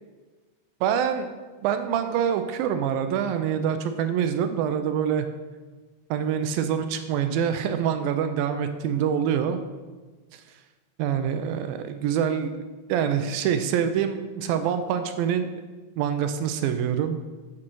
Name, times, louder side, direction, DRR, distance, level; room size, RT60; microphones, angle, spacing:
voice 1, 0.8-1.3 1.6-5.3 6.1-9.6 11.0-12.5 12.9-15.5 16.0-17.2, right 8 dB, 80° right, 8 dB, 2.2 m, -25 dB
8.6 x 7.4 x 4.6 m, 1.3 s
omnidirectional pair, 4.4 m